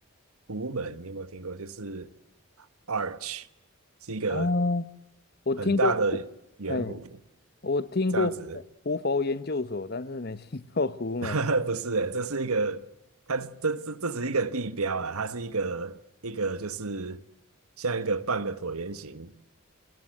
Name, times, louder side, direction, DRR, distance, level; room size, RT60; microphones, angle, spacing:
voice 1, 0.5-2.1 2.9-3.5 4.0-4.5 5.6-6.2 6.6-7.2 8.1-8.6 11.2-12.9 13.3-17.2 17.8-19.3, right 3 dB, 85° right, 1.4 m, -30 dB
voice 2, 4.3-4.8 5.5-5.9 6.7-7.0 7.6-8.3 8.8-11.4, left 3 dB, 45° left, 1.0 m, -27 dB
29.5 x 20.5 x 7.7 m
head